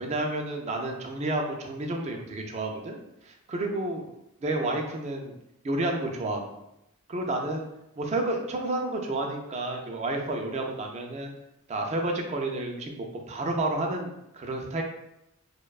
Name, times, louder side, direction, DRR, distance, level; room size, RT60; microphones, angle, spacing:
voice 1, 0.0-4.1 4.4-5.4 5.6-6.6 7.1-7.7 8.0-11.3 11.7-14.8, right 2 dB, 30° right, 2 dB, 0.3 m, -30 dB
2.5 x 2.1 x 2.3 m, 0.86 s
head